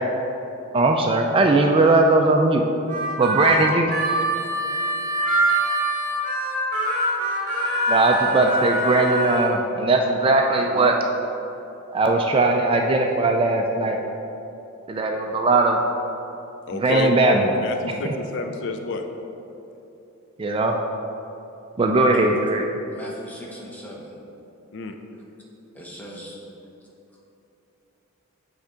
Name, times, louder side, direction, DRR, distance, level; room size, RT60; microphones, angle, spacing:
voice 1, 0.7-2.6 3.2-3.9 7.9-11.0 11.9-14.0 14.9-15.8 16.7-17.5 18.0-18.1 20.4-20.7 21.8-22.6, right 2 dB, 25° right, 2 dB, 0.3 m, -19 dB
Harmonica, 2.9-9.5, right 1 dB, 40° right, 1.4 m, -24 dB
voice 2, 16.7-17.1 17.6-19.0 24.7-25.0, left 4 dB, 55° left, 6 dB, 0.4 m, -30 dB
voice 3, 22.9-24.1 25.7-26.4, equal, 5° left, -4 dB, 0.9 m, -39 dB
7.9 x 3.5 x 5.0 m, 2.9 s
head